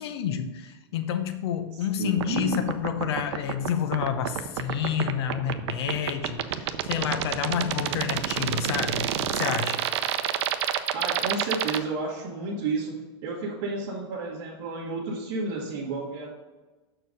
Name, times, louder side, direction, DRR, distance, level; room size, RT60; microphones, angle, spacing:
voice 1, 0.0-9.8, left 8 dB, 70° left, 8 dB, 0.7 m, -29 dB
voice 2, 1.7-2.6 10.9-12.9 13.2-16.3, right 3 dB, 50° right, -7 dB, 1.7 m, -31 dB
sound 1, 2.2-11.8, right 11 dB, 90° right, 0.6 m, -27 dB
6.8 x 4.5 x 5.2 m, 1.2 s
supercardioid pair, 180°, 14 cm